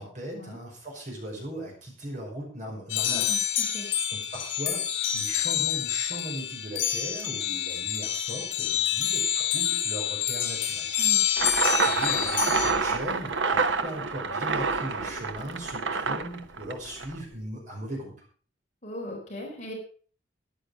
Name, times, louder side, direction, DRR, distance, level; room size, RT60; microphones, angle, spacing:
voice 1, 0.0-3.3 4.1-10.9 11.7-18.1, right 1 dB, 40° right, -1 dB, 5.6 m, -38 dB
sound 1, 2.9-12.7, left 10 dB, 75° left, 2.6 m, -27 dB
voice 2, 3.1-3.9 11.0-11.2 18.8-19.7, left 1 dB, 40° left, 0 dB, 4.1 m, -39 dB
sound 2, 11.4-17.2, right 4 dB, 80° right, 1.0 m, -27 dB
13.0 x 10.5 x 4.8 m, 0.41 s
head